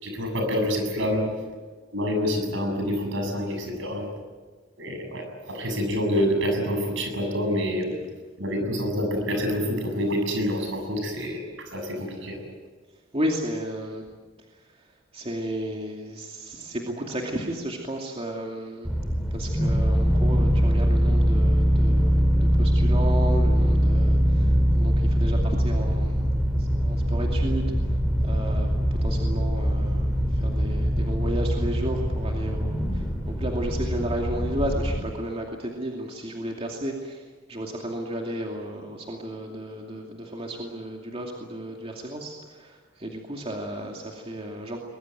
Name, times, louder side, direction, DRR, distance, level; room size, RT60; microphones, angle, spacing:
voice 1, 0.0-1.2 1.9-4.1 4.8-8.0 8.4-12.4, equal, 70° right, 4 dB, 7.1 m, -27 dB
voice 2, 13.1-14.0 15.1-18.9 19.3-27.9 28.2-44.8, right 1 dB, 30° right, 0 dB, 2.6 m, -33 dB
sound 1, 18.8-35.0, equal, 5° right, 2.7 m, -22 dB
23.0 x 22.0 x 9.2 m, 1.4 s
head